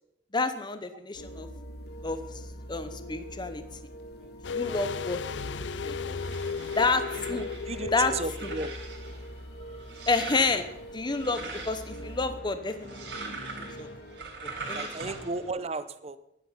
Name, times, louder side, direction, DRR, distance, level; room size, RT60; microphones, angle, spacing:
voice 1, 0.3-1.5 2.0-2.4 2.7-3.6 4.5-5.2 5.5-6.2 6.8-7.5 7.9-8.1 10.1-10.6 10.9-13.3 13.6-13.9 14.4-14.9, left 3 dB, 25° left, 10 dB, 0.7 m, -29 dB
sound 1, 1.1-14.2, equal, 60° left, 1.4 m, -43 dB
sound 2, 4.4-9.3 9.5-9.6, left 5 dB, 80° left, 0.5 m, -35 dB
sound 3, 5.8-15.5, right 3 dB, 75° right, 4.4 m, -42 dB
voice 2, 7.1-8.7 14.6-16.2, right 3 dB, 35° right, 13 dB, 0.7 m, -35 dB
11.5 x 10.5 x 5.6 m, 0.84 s
head